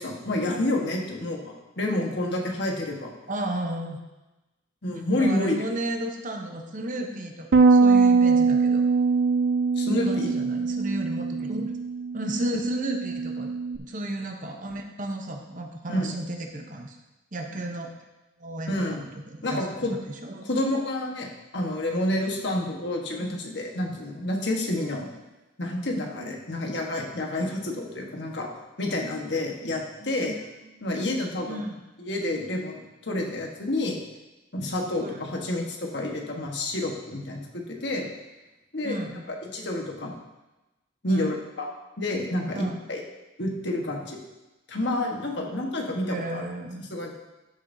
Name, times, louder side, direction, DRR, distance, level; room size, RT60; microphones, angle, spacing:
voice 1, 0.0-3.1 4.8-5.6 9.8-10.3 15.9-16.1 18.7-19.1 19.4-20.0 20.4-25.1 25.6-28.5 28.8-30.4 30.8-31.6 32.0-34.0 34.5-38.1 38.7-39.0 39.3-40.1 41.0-41.7 42.0-43.0 43.4-44.2 44.7-46.4 46.9-47.1, left 1 dB, 60° left, 1 dB, 1.4 m, -29 dB
voice 2, 3.3-4.0 5.2-8.8 9.8-11.7 12.1-13.5 13.9-17.0 17.3-17.9 18.4-20.5 23.2-23.3 30.0-30.3 30.8-30.9 31.5-31.8 35.0-35.2 38.8-39.2 41.1-41.3 42.5-42.8 46.1-46.8, right 1 dB, 40° right, 3 dB, 0.8 m, -33 dB
Bass guitar, 7.5-13.8, right 4 dB, 60° right, 0.4 m, -22 dB
12.5 x 6.9 x 2.7 m, 1.0 s
head